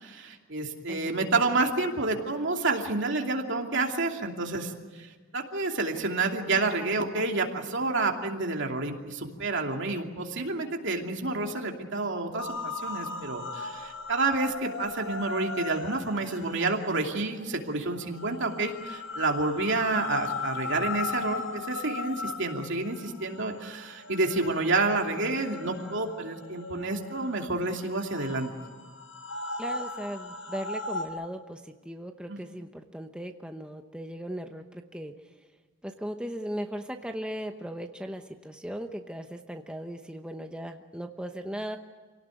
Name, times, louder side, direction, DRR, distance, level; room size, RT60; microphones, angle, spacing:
voice 1, 0.0-28.5 32.3-32.4, right 3 dB, 65° right, 2 dB, 2.8 m, -29 dB
sound 1, 12.4-31.1, left 3 dB, 75° left, 5.0 m, -38 dB
voice 2, 29.6-35.1 35.8-41.8, equal, 5° right, 5 dB, 0.9 m, -38 dB
27.0 x 18.0 x 9.2 m, 1.4 s
head